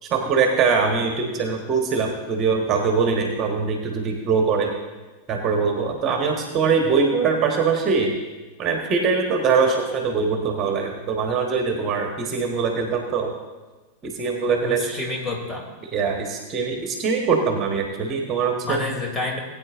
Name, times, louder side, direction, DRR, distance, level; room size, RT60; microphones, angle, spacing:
voice 1, 0.0-4.7 5.3-8.1 8.6-13.3 14.0-15.0 15.9-18.8, right 5 dB, 30° right, 3 dB, 1.4 m, -22 dB
voice 2, 14.5-15.7 18.6-19.4, left 2 dB, 20° left, 0 dB, 2.9 m, -29 dB
19.5 x 9.0 x 2.6 m, 1.2 s
figure-of-eight pair, 90°, 0 cm